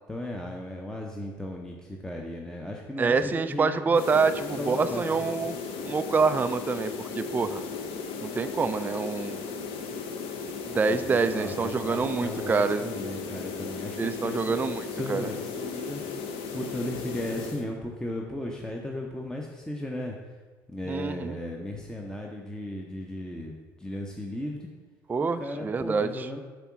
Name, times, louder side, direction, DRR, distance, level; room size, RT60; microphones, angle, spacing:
voice 1, 0.1-5.3 10.8-20.2 20.7-24.7 25.2-26.4, left 1 dB, 5° left, 1 dB, 0.7 m, -36 dB
voice 2, 3.0-5.6 5.8-7.6 8.2-9.4 10.7-12.9 14.0-15.3 20.9-21.4 25.1-26.3, right 4 dB, 15° right, 11 dB, 0.3 m, -26 dB
sound 1, 3.9-17.7, left 5 dB, 55° left, 0.7 m, -36 dB
7.8 x 3.7 x 6.0 m, 1.4 s
figure-of-eight pair, 55°, 12 cm